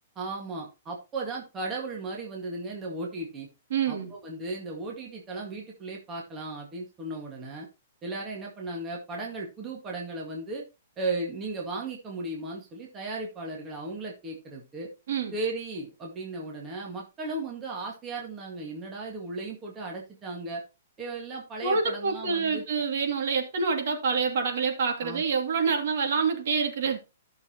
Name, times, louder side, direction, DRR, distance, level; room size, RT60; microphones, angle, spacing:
voice 1, 0.2-3.5 3.9-7.7 8.0-10.6 11.0-14.9 15.3-20.6 21.0-22.6 25.0-25.2, right 2 dB, 15° right, 1.9 m, -36 dB
voice 2, 3.7-4.1 15.1-15.3 21.6-27.0, right 5 dB, 55° right, 2.7 m, -27 dB
14.5 x 6.7 x 3.0 m
hypercardioid pair, 165°, 0 cm